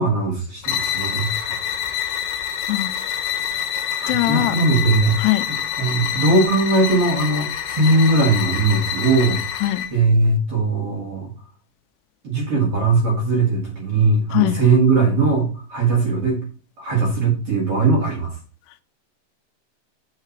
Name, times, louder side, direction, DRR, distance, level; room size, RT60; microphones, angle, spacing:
voice 1, 0.0-1.6 4.0-5.2 5.5-9.5 9.9-11.3 12.2-16.4 16.8-18.4, right 3 dB, 45° right, -1 dB, 2.3 m, -19 dB
sound 1, 0.6-10.0, left 9 dB, 70° left, 2.4 m, -26 dB
voice 2, 4.1-4.6 5.2-5.4 9.6-9.8 14.3-14.6, left 17 dB, 85° left, 11 dB, 2.7 m, -20 dB
7.9 x 5.8 x 4.6 m, 0.37 s
omnidirectional pair, 4.7 m